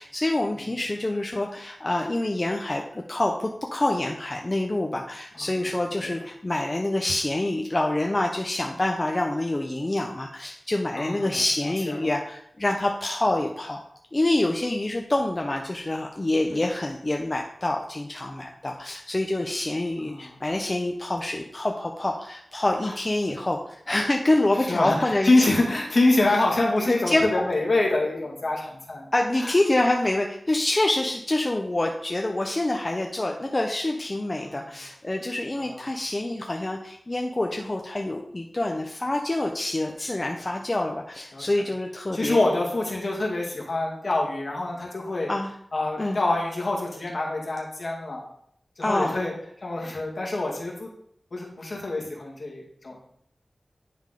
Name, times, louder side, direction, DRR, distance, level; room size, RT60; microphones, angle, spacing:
voice 1, 0.0-13.8 14.1-25.3 26.9-27.3 29.1-42.4 45.3-45.5 46.0-46.2 48.8-49.2, left 1 dB, 35° left, 2 dB, 0.7 m, -26 dB
voice 2, 5.3-5.7 6.0-6.1 10.9-11.3 11.6-12.1 20.0-20.3 22.8-22.9 24.6-29.1 29.4-29.5 34.4-34.7 35.6-35.9 40.0-40.1 41.3-41.4 42.1-45.3 45.7-48.2 48.8-49.3 49.6-50.9 51.3-53.0, left 2 dB, 65° left, -1 dB, 1.9 m, -26 dB
10.5 x 3.7 x 3.8 m, 0.69 s
cardioid pair, 50°, 0 cm